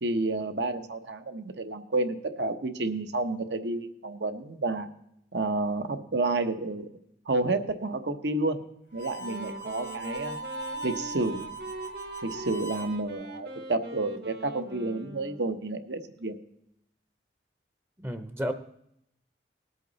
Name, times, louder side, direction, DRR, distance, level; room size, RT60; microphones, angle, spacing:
voice 1, 0.0-4.9 5.3-6.9 7.3-8.6 8.9-10.4 10.8-11.4 12.2-16.3, right 2 dB, 80° right, 8 dB, 1.1 m, -30 dB
Harmonica, 8.9-13.0, right 3 dB, 90° left, 1.6 m, -39 dB
Wind instrument woodwind instrument, 9.1-15.6, equal, 65° right, 1.3 m, -42 dB
voice 2, 18.0-18.5, equal, 15° right, 10 dB, 0.6 m, -31 dB
19.0 x 8.3 x 4.1 m, 0.76 s
head